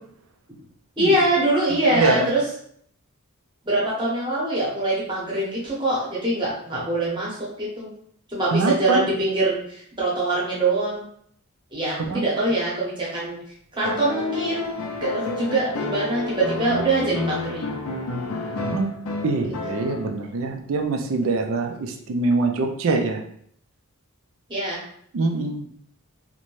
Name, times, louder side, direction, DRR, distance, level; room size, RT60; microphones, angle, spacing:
voice 1, 1.0-2.5 3.6-7.9 8.3-11.1 11.7-13.4 13.7-14.7 15.0-17.7 19.7-19.8 24.5-24.8, right 2 dB, 20° right, -5 dB, 0.8 m, -24 dB
voice 2, 1.9-2.3 8.5-9.1 12.1-12.2 18.6-18.9 19.2-23.2 25.1-25.6, right 3 dB, 65° right, 4 dB, 0.4 m, -23 dB
sound 1, 13.8-20.3 21.8-21.9, left 2 dB, 80° left, 0.5 m, -30 dB
2.6 x 2.1 x 3.0 m, 0.64 s
head